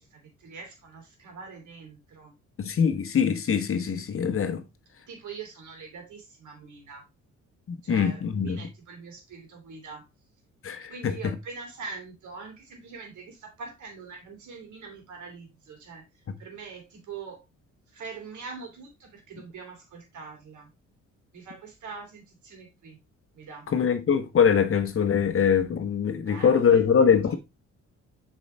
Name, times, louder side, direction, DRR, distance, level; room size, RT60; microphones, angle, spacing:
voice 1, 0.0-2.3 5.1-7.0 7.8-10.1 10.9-16.0 16.4-17.4 17.9-20.7 21.3-23.0 23.3-23.7 26.2-26.8 27.3-27.4, right 5 dB, 75° right, 3.1 m, -43 dB
voice 2, 2.6-4.6 7.7-8.7 10.6-11.1 23.7-27.3, left 7 dB, 45° left, 1.1 m, -23 dB
7.0 x 4.8 x 3.3 m
cardioid pair, 90°, 30 cm